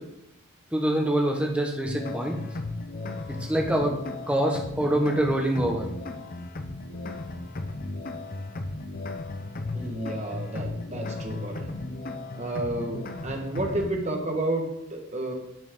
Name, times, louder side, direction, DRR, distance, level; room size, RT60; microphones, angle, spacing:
voice 1, 0.7-2.4 3.4-4.0 4.3-5.8, right 1 dB, 5° right, 1 dB, 1.1 m, -25 dB
sound 1, 1.8-13.9, left 2 dB, 40° left, 0.6 m, -35 dB
voice 2, 9.7-11.7 12.3-15.3, right 2 dB, 30° right, 2 dB, 1.3 m, -31 dB
10.5 x 6.2 x 3.7 m, 0.82 s
head